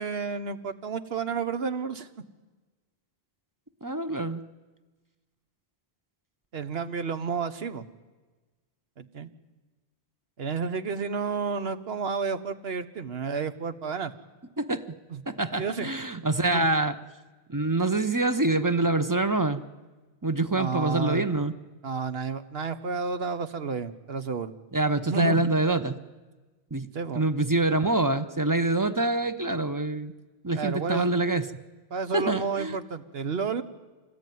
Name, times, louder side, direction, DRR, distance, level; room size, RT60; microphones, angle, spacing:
voice 1, 0.0-2.1 6.5-7.8 9.0-9.3 10.4-14.1 15.1-15.2 15.6-15.9 16.5-16.7 20.5-21.3 21.8-24.5 25.1-25.5 26.9-27.2 30.5-31.1 31.9-33.6, right 5 dB, 70° right, 11 dB, 1.3 m, -31 dB
voice 2, 3.8-4.4 14.6-14.8 15.3-17.0 17.5-19.7 20.2-21.5 24.7-26.0 26.7-26.9 27.1-30.1 30.4-31.4 32.1-32.8, right 2 dB, 20° right, 10 dB, 0.8 m, -25 dB
26.0 x 20.0 x 9.3 m, 1.3 s
omnidirectional pair, 1.1 m